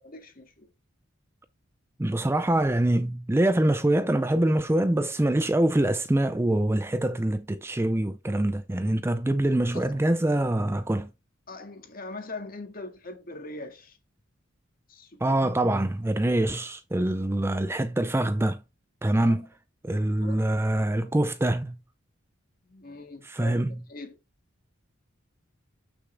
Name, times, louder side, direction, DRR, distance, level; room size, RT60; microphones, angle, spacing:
voice 1, 0.0-0.7 9.7-10.0 11.5-14.0 14.9-15.4 19.2-19.4 20.2-20.4 22.7-24.2, left 2 dB, 45° left, 1.9 m, -42 dB
voice 2, 2.0-11.1 15.2-18.6 19.0-19.5 19.8-21.8 23.2-23.8, right 1 dB, 10° right, 0.4 m, -24 dB
7.9 x 6.4 x 3.4 m
head